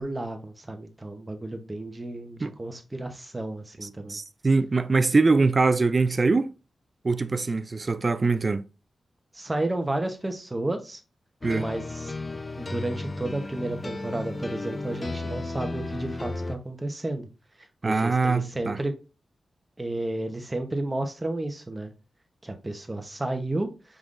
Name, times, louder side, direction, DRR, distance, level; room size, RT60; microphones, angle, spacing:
voice 1, 0.0-4.2 9.3-11.0 11.6-12.1 12.6-17.3 17.8-18.9 19.8-21.9 22.4-24.0, right 2 dB, 20° right, 0.9 m, -32 dB
voice 2, 3.8-6.5 7.0-8.6 11.4-11.7 17.8-18.8, right 3 dB, 40° right, 0.4 m, -23 dB
sound 1, 11.4-16.6, left 2 dB, 30° left, 0.4 m, -34 dB
4.9 x 3.7 x 2.5 m
wide cardioid pair, 85°, 0 cm